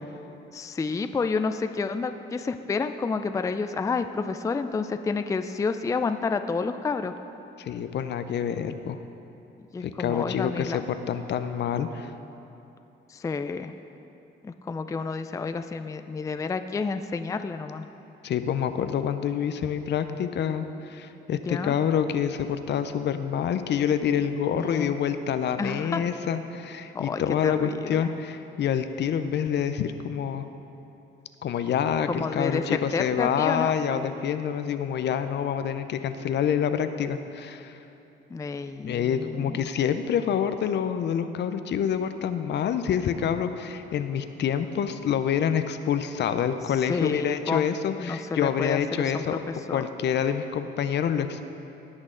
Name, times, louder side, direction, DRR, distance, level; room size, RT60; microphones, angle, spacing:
voice 1, 0.5-7.1 9.7-10.8 13.1-13.7 14.4-17.8 21.3-21.8 24.5-24.9 25.6-26.0 26.9-28.1 32.1-33.7 38.3-39.7 46.9-47.7 48.0-49.9, left 4 dB, 15° left, 9 dB, 0.4 m, -30 dB
voice 2, 7.6-9.0 9.8-12.1 18.2-30.4 31.4-37.8 38.8-49.4 49.7-51.5, left 8 dB, 60° left, 10 dB, 0.6 m, -27 dB
17.0 x 6.1 x 3.8 m, 2.9 s
cardioid pair, 90°, 20 cm